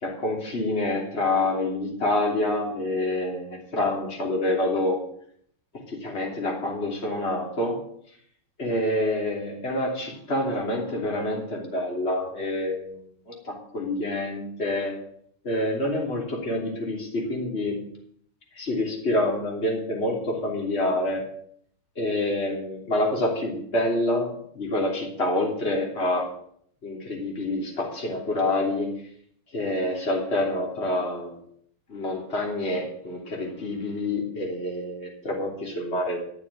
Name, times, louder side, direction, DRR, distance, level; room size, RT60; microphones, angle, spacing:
voice 1, 0.0-5.0 5.9-7.8 8.6-15.0 15.4-17.8 18.5-21.2 22.0-26.3 26.8-29.0 29.5-31.4 31.9-36.2, left 1 dB, 30° left, -1 dB, 3.3 m, -27 dB
12.0 x 6.7 x 9.8 m, 0.65 s
omnidirectional pair, 2.4 m